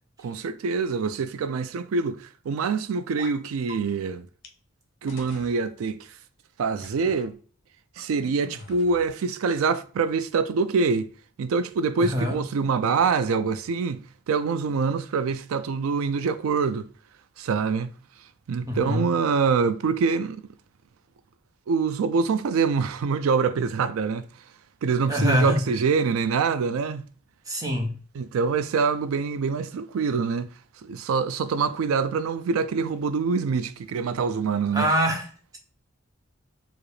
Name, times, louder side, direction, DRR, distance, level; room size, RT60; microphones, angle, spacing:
voice 1, 0.2-4.3 5.0-6.0 6.6-7.4 8.0-11.1 11.4-14.0 14.3-16.9 17.4-17.9 18.5-20.4 21.7-24.3 24.8-27.1 28.2-30.5 30.8-34.9, right 5 dB, 85° right, 0.4 m, -25 dB
sound 1, 3.2-3.4 3.7-3.8 4.4-4.5 5.1-5.6 6.8-7.3 8.4-9.1, left 2 dB, 60° left, 0.7 m, -43 dB
voice 2, 12.0-12.4 18.7-19.1 25.1-25.6 27.5-28.0 34.7-35.6, equal, 15° right, 0.7 m, -25 dB
4.8 x 2.0 x 3.1 m
head